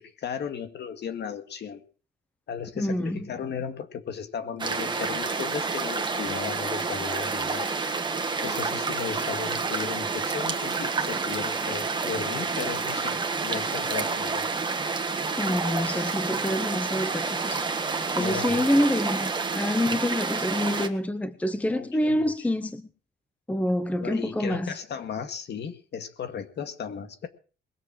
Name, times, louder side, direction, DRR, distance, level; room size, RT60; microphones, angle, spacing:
voice 1, 0.0-1.8 2.5-7.7 8.4-14.5 18.1-19.0 21.6-22.5 24.0-27.3, left 7 dB, 60° left, 2.1 m, -35 dB
voice 2, 2.8-3.2 15.4-17.6 18.2-22.9 23.5-24.7, left 1 dB, 5° left, 0.8 m, -27 dB
sound 1, 4.6-20.9, right 4 dB, 20° right, 1.5 m, -29 dB
21.0 x 7.5 x 7.7 m
wide cardioid pair, 180°, 20 cm